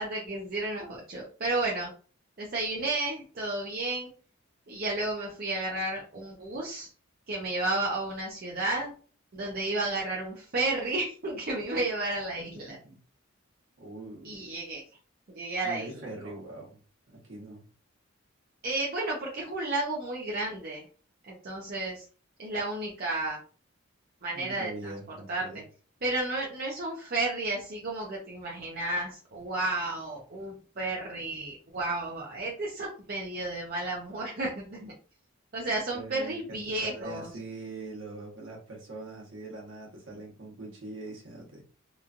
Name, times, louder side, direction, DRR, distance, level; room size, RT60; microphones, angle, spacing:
voice 1, 0.0-1.9 2.4-4.1 4.7-6.9 7.3-8.9 9.3-12.8 14.2-14.8 15.3-15.9 18.6-20.8 21.2-22.0 22.4-23.4 24.2-24.9 25.3-25.5 26.0-34.9 35.5-37.3, right 2 dB, 45° right, -3 dB, 0.5 m, -32 dB
voice 2, 12.7-13.0 13.8-14.5 15.6-16.8 17.2-17.6 24.3-25.6 35.9-41.6, right 2 dB, 65° right, -2 dB, 1.1 m, -42 dB
3.0 x 2.2 x 2.4 m, 0.39 s
head